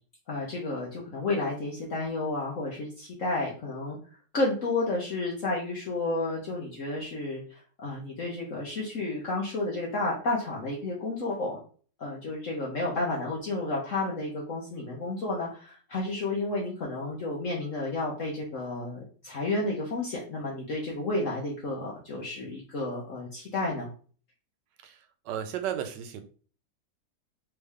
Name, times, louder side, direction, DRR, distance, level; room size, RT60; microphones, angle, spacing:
voice 1, 0.3-4.0 4.3-11.6 12.0-23.9, left 2 dB, 55° left, -4 dB, 1.2 m, -31 dB
voice 2, 24.8-26.2, right 9 dB, 90° right, 8 dB, 1.3 m, -34 dB
3.6 x 3.3 x 3.4 m, 0.41 s
omnidirectional pair, 1.9 m